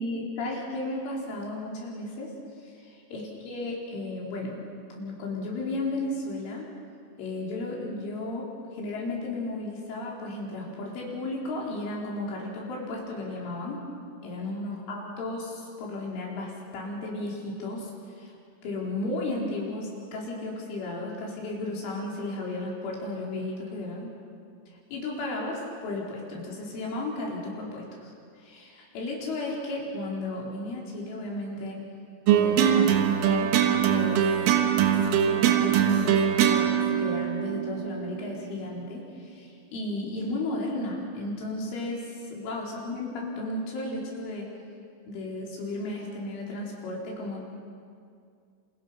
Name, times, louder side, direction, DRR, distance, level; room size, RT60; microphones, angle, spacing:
voice 1, 0.0-2.3 2.8-4.6 5.0-6.7 7.2-13.8 14.2-17.9 18.2-18.3 18.6-24.1 24.9-28.1 28.4-31.8 32.3-33.5 33.9-34.2 34.7-44.5 45.1-47.4, left 2 dB, 75° left, -3 dB, 6.6 m, -34 dB
sound 1, 32.3-38.7, right 9 dB, 80° right, 4.0 m, -23 dB
28.5 x 28.0 x 5.7 m, 2.3 s
omnidirectional pair, 5.7 m